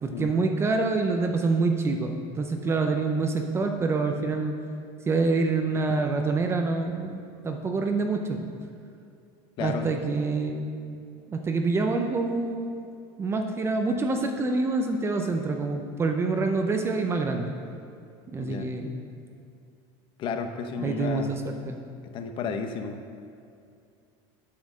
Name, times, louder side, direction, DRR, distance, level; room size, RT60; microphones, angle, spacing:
voice 1, 0.0-4.5 5.1-8.5 9.6-10.7 11.3-12.7 13.2-17.5 18.3-19.0 20.8-21.8, right 3 dB, 20° right, 4 dB, 0.6 m, -26 dB
voice 2, 9.6-9.9 18.4-18.7 20.2-21.4 22.1-23.2, left 5 dB, 45° left, 7 dB, 0.8 m, -33 dB
8.4 x 6.3 x 6.3 m, 2.4 s
supercardioid pair, 140°, 12 cm